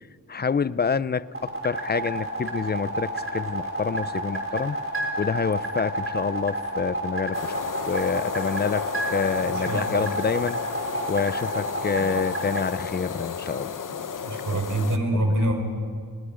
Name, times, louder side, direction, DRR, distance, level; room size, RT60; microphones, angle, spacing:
voice 1, 0.3-4.8 5.2-7.6 7.9-10.6 11.1-13.8 14.5-14.6 15.1-15.3, left 5 dB, 30° left, 18 dB, 0.5 m, -27 dB
sound 1, 1.3-12.7, right 1 dB, 40° right, 4.3 m, -30 dB
sound 2, 7.3-15.0, left 7 dB, 65° left, 1.0 m, -33 dB
voice 2, 9.4-10.1 11.9-12.1 14.2-15.5, right 1 dB, 60° right, 4 dB, 4.2 m, -26 dB
29.0 x 20.5 x 5.1 m, 2.1 s
wide cardioid pair, 95°, 35 cm